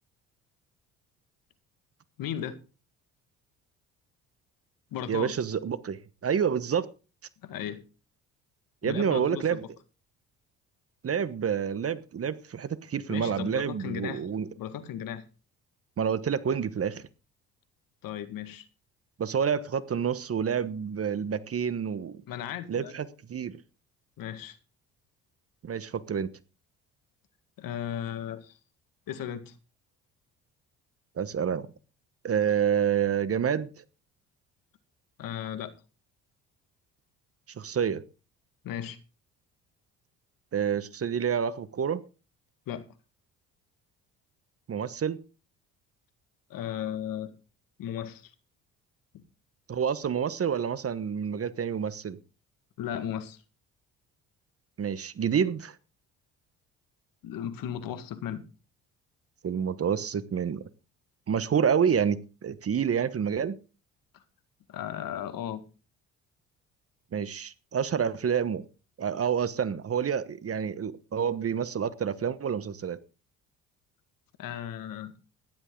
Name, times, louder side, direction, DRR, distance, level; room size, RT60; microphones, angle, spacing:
voice 1, 2.2-2.6 4.9-5.3 7.4-7.8 8.8-9.6 13.1-14.3 14.6-15.2 18.0-18.7 22.3-22.9 24.2-24.6 27.6-28.6 29.1-29.6 35.2-35.7 38.6-39.0 42.7-42.9 46.5-47.3 47.8-48.3 49.1-49.2 52.8-53.4 57.2-58.4 64.1-64.2 64.7-65.6 74.4-75.1, left 10 dB, 65° left, 11 dB, 1.9 m, -36 dB
voice 2, 5.1-6.9 8.8-9.6 11.0-14.5 16.0-17.0 19.2-22.2 22.7-23.6 25.6-26.3 31.2-31.7 32.2-33.7 37.6-38.0 40.5-42.0 44.7-45.2 49.7-52.2 54.8-55.7 59.4-60.6 61.3-63.6 67.1-68.6 69.0-73.0, right 7 dB, 40° right, 16 dB, 1.2 m, -28 dB
15.5 x 11.5 x 3.8 m, 0.32 s
hypercardioid pair, 60°, 37 cm